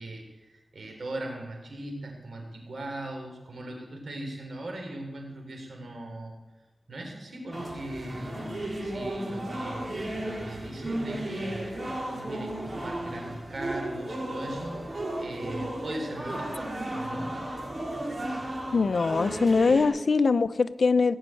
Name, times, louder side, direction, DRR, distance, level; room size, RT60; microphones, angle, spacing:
voice 1, 0.0-6.4 6.9-17.4, right 1 dB, 80° right, 2 dB, 3.8 m, -39 dB
sound 1, 7.5-19.9, right 1 dB, 40° right, 4.0 m, -34 dB
voice 2, 18.7-21.2, left 4 dB, 75° left, 13 dB, 0.6 m, -22 dB
17.0 x 6.5 x 9.2 m, 1.1 s
wide cardioid pair, 60°, 0 cm